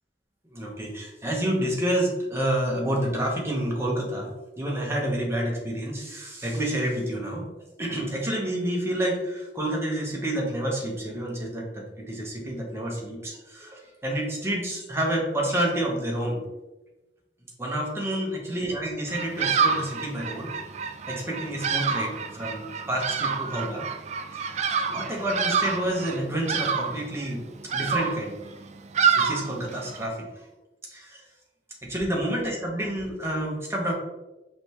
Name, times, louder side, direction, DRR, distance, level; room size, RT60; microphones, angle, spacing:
voice 1, 0.5-4.3 4.6-7.4 7.8-16.4 17.6-20.5 21.1-23.8 24.3-27.4 27.7-28.3 29.1-30.5 30.9-31.2 31.8-33.9, right 1 dB, 15° right, -2 dB, 1.0 m, -29 dB
Bird vocalization bird call bird song, 19.1-30.0, right 6 dB, 40° right, 0.4 m, -28 dB
5.1 x 3.3 x 3.0 m, 1.1 s
head